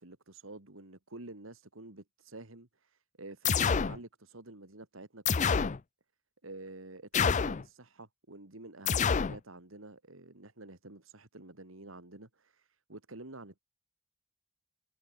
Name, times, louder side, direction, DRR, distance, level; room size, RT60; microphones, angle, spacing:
voice 1, 0.0-5.6 6.4-13.6, right 2 dB, 70° right, 2.5 m, -49 dB
sound 1, 3.4-4.0 5.3-5.8 7.1-7.6 8.9-9.4, left 6 dB, 35° left, 0.5 m, -27 dB
head